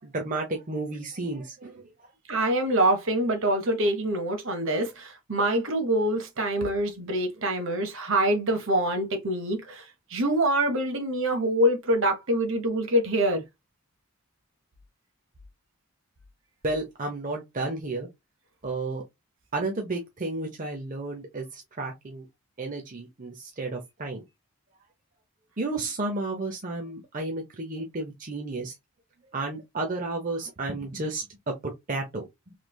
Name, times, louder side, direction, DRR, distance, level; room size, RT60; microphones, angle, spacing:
voice 1, 0.0-2.1 16.6-18.1 18.6-19.0 19.5-22.3 22.6-24.2 25.6-28.8 29.3-32.5, right 2 dB, 35° right, 0.6 m, -32 dB
voice 2, 2.3-13.4, right 1 dB, 60° right, 0.9 m, -25 dB
3.2 x 3.2 x 2.2 m
head